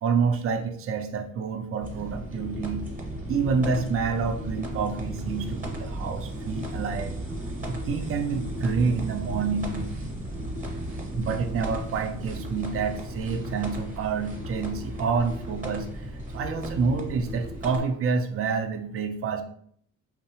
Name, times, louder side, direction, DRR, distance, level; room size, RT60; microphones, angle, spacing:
voice 1, 0.0-2.8 3.3-7.2 7.7-10.0 11.1-19.4, right 5 dB, 50° right, 7 dB, 0.4 m, -28 dB
sound 1, 1.8-17.8, equal, 25° right, 0.9 m, -35 dB
2.7 x 2.1 x 2.8 m, 0.62 s
cardioid pair, 90°, 30 cm